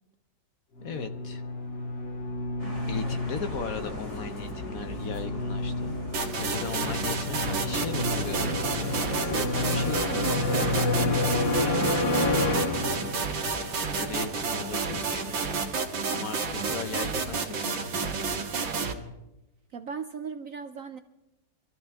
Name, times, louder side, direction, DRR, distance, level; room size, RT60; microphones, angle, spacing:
sound 1, 0.8-13.4, left 2 dB, 80° left, 2.6 m, -30 dB
voice 1, 0.8-1.4 2.9-5.9 6.4-8.5 9.2-10.9 13.9-15.7 16.1-17.8, left 5 dB, 60° left, 9 dB, 1.0 m, -37 dB
sound 2, 2.6-15.6, equal, 35° left, 4.1 m, -41 dB
sound 3, 6.1-18.9, right 5 dB, 90° right, 2.3 m, -30 dB
voice 2, 19.7-21.0, right 5 dB, 65° right, 9 dB, 0.8 m, -38 dB
25.0 x 14.0 x 3.5 m, 0.96 s
omnidirectional pair, 2.0 m